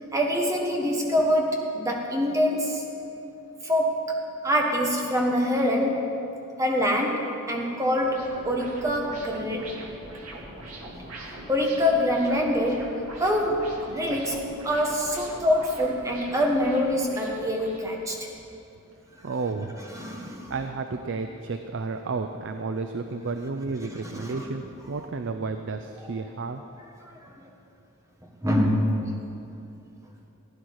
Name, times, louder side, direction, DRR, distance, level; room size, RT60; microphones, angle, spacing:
voice 1, 0.1-2.8 3.6-4.2 4.4-6.0 6.6-9.7 10.9-11.1 11.5-12.9 13.2-18.2 19.9-20.5 24.0-24.4 27.2-27.3 28.4-28.9, equal, 15° right, 0 dB, 1.4 m, -25 dB
sound 1, 8.0-18.1, right 1 dB, 85° right, 2.1 m, -42 dB
voice 2, 19.2-19.8 20.5-26.6, right 4 dB, 55° right, 7 dB, 0.5 m, -32 dB
16.5 x 10.0 x 4.8 m, 2.8 s
head